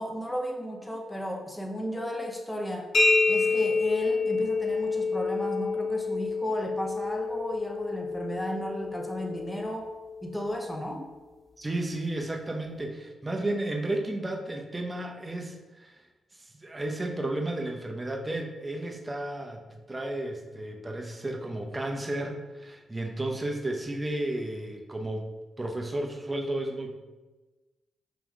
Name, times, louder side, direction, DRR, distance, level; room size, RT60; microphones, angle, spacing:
voice 1, 0.0-2.9 3.3-9.9 10.2-11.1, equal, 5° left, 1 dB, 0.7 m, -34 dB
sound 1, 2.9-10.5, left 3 dB, 55° left, 0.8 m, -28 dB
voice 2, 11.6-16.0 16.3-25.3 25.6-27.0, right 1 dB, 25° right, 2 dB, 0.7 m, -33 dB
3.5 x 3.0 x 3.5 m, 1.2 s
supercardioid pair, 60°, 0 cm